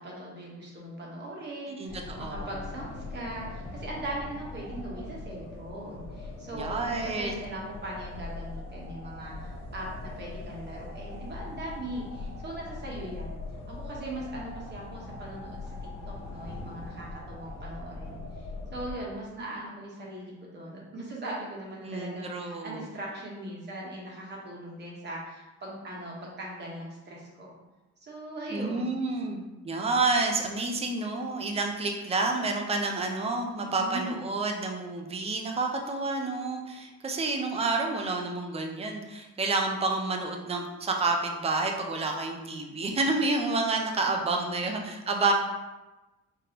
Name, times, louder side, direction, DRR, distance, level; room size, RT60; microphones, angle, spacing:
voice 1, 0.0-13.4 13.7-15.8 16.0-27.5 28.0-29.5 33.6-34.4 44.0-44.6, right 1 dB, 35° right, -4 dB, 1.2 m, -40 dB
voice 2, 1.8-2.5 6.5-7.3 21.8-22.8 28.5-45.3, right 3 dB, 20° right, 2 dB, 0.5 m, -29 dB
sound 1, 1.9-19.0, left 3 dB, 70° left, 1.1 m, -41 dB
5.0 x 3.3 x 2.9 m, 1.1 s
cardioid pair, 155°, 29 cm